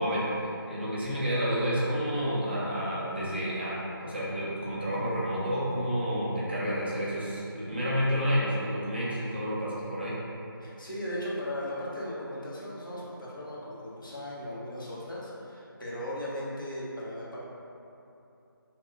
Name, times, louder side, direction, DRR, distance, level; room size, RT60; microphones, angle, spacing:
voice 1, 0.0-10.2, equal, 25° right, -9 dB, 0.4 m, -30 dB
voice 2, 10.6-17.4, equal, 60° left, -7 dB, 0.9 m, -37 dB
2.9 x 2.1 x 3.5 m, 2.8 s
figure-of-eight pair, 170°, 12 cm